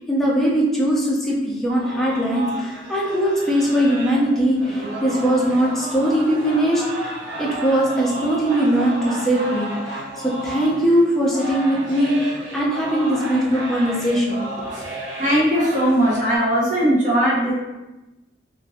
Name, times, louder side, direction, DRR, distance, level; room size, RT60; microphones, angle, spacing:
voice 1, 0.0-10.0 10.4-14.4, equal, ahead, -5 dB, 0.6 m, -20 dB
sound 1, 1.7-16.4, right 1 dB, 80° right, 0.7 m, -33 dB
voice 2, 15.2-17.5, equal, 45° right, -6 dB, 1.0 m, -19 dB
3.0 x 2.6 x 2.7 m, 1.1 s
head